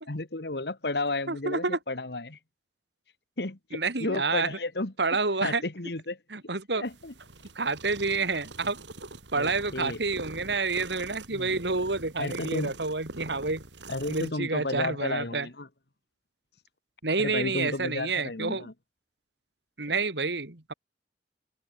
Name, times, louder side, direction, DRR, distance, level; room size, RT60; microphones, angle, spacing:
voice 1, 0.1-2.4 3.4-4.9 5.4-6.2 6.7-7.1 9.3-10.0 11.3-11.5 12.2-12.7 13.9-15.7 17.2-18.7, left 2 dB, 65° left, 1.7 m, -32 dB
voice 2, 1.3-1.8 3.7-4.6 5.0-5.6 6.3-6.8 7.6-8.8 9.3-13.6 14.1-15.5 17.0-18.7 19.8-20.7, right 3 dB, 75° right, 2.3 m, -29 dB
sound 1, 6.9-14.3, right 2 dB, 90° right, 4.5 m, -44 dB
head